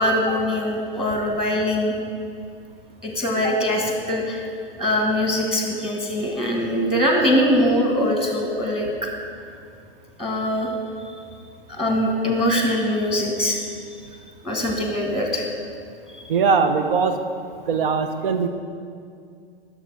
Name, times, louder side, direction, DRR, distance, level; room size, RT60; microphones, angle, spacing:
voice 1, 0.0-1.9 3.0-4.5 4.8-8.9 10.2-10.7 11.7-13.6 14.4-15.5 16.1-16.2, left 1 dB, ahead, 1 dB, 1.4 m, -22 dB
voice 2, 16.3-17.2 17.7-18.5, right 5 dB, 65° right, 8 dB, 0.9 m, -20 dB
11.0 x 6.8 x 4.8 m, 2.3 s
hypercardioid pair, 110°, 30 cm